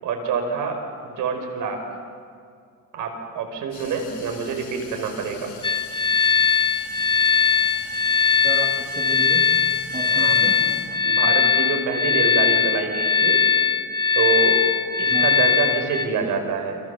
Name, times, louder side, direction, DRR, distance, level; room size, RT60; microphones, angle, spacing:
voice 1, 0.0-1.8 2.9-5.5 10.0-10.7 11.0-13.4 14.2-14.6 15.0-16.8, right 5 dB, 65° right, 3 dB, 5.4 m, -26 dB
sound 1, 3.7-11.3, left 6 dB, 55° left, 6.9 m, -43 dB
sound 2, 5.6-16.1, left 6 dB, 15° left, 0.7 m, -20 dB
voice 2, 8.4-9.5 9.9-10.6 15.1-15.4, right 3 dB, 25° right, 0 dB, 2.7 m, -32 dB
29.5 x 26.0 x 7.2 m, 2.2 s
cardioid pair, 170°, 34 cm